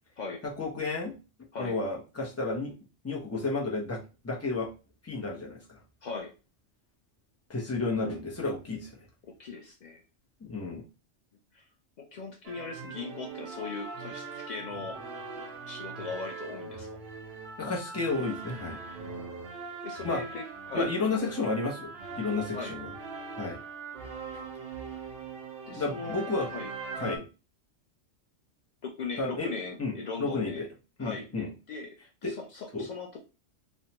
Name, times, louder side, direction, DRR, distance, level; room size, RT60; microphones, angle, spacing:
voice 1, 0.4-1.1 1.6-2.7 3.0-4.7 5.0-5.8 7.5-8.9 10.4-10.8 17.6-18.8 20.0-20.2 20.7-22.9 23.4-23.6 24.3-24.4 25.7-26.5 27.0-27.2 29.2-29.5 29.8-30.7 31.0-31.5 32.2-32.3 32.7-32.9, left 3 dB, 20° left, -1 dB, 0.5 m, -32 dB
voice 2, 6.0-6.3 9.2-10.0 11.5-11.6 12.0-15.0 15.6-16.9 19.0-19.3 19.8-20.9 22.5-22.8 25.7-26.2 26.5-26.7 28.8-30.7 31.0-32.0 32.2-33.2, left 4 dB, 85° left, 2 dB, 0.3 m, -39 dB
sound 1, 12.4-27.2, right 4 dB, 60° right, 0.8 m, -41 dB
3.1 x 2.1 x 2.8 m, 0.31 s
omnidirectional pair, 1.3 m